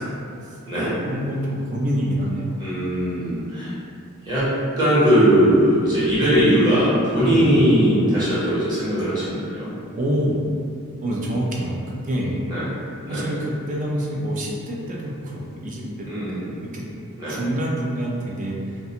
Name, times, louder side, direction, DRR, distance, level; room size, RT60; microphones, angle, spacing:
voice 1, 0.8-2.6 7.2-7.5 9.9-10.4 11.0-12.4 13.1-16.8 17.3-18.8, right 1 dB, 35° right, -3 dB, 0.4 m, -26 dB
voice 2, 2.6-3.7 4.2-4.5 4.8-9.7 12.5-12.7 13.1-13.3 16.0-16.5 17.2-17.4, equal, 20° right, -12 dB, 0.9 m, -19 dB
2.4 x 2.2 x 2.8 m, 2.5 s
head